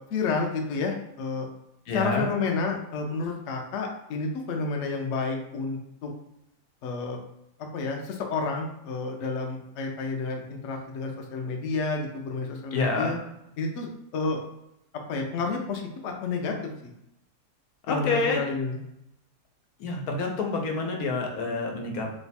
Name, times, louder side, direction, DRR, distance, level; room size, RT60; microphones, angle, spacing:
voice 1, 0.0-1.5 1.9-6.1 6.8-7.2 7.7-13.2 13.6-14.4 15.1-16.9 17.9-18.8, left 4 dB, 65° left, 2 dB, 0.8 m, -30 dB
voice 2, 1.9-2.3 12.7-13.1 17.9-18.4 19.8-22.1, left 3 dB, 85° left, 2 dB, 1.2 m, -28 dB
3.0 x 2.2 x 4.1 m, 0.82 s
omnidirectional pair, 1.6 m